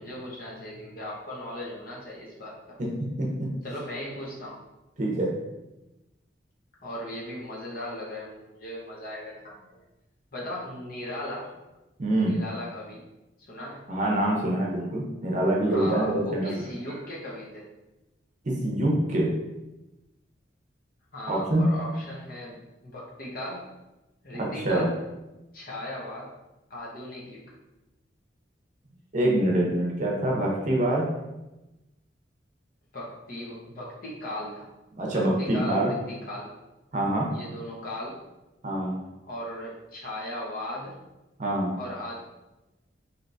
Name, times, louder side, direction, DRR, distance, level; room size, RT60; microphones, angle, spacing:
voice 1, 0.0-2.8 3.6-4.6 6.8-9.8 10.3-11.5 12.2-13.0 13.5-13.9 15.7-17.7 21.1-23.7 24.2-24.9 25.5-26.3 26.7-27.5 32.9-34.7 35.1-36.5 37.3-38.2 39.2-41.0 41.8-42.1, left 1 dB, 55° left, -4 dB, 0.9 m, -37 dB
voice 2, 3.2-3.5 5.0-5.3 12.0-12.4 13.9-16.5 18.4-19.3 21.3-21.7 24.4-24.9 29.1-31.1 34.9-35.9 36.9-37.3 38.6-38.9 41.4-41.7, right 1 dB, 45° right, -2 dB, 0.7 m, -25 dB
3.3 x 2.8 x 2.6 m, 1.0 s
head